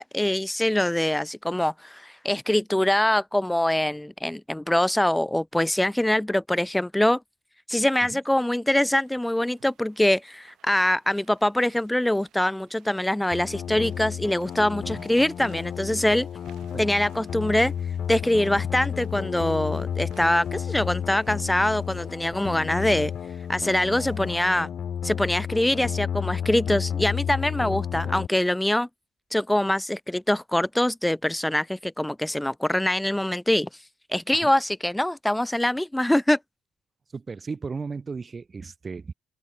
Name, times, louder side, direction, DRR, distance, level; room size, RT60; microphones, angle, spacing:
voice 1, 0.0-7.2 7.7-16.3 16.8-17.7 18.1-23.1 23.5-24.7 25.0-28.9 29.3-33.8 34.1-36.4, left 1 dB, 5° left, 0.7 m, -24 dB
sound 1, 9.0-24.6, right 12 dB, 60° right, 7.5 m, -60 dB
sound 2, 13.3-28.3, left 8 dB, 50° left, 0.5 m, -32 dB
voice 2, 37.1-39.1, right 4 dB, 35° right, 3.0 m, -35 dB
open air
figure-of-eight pair, 45°, 0 cm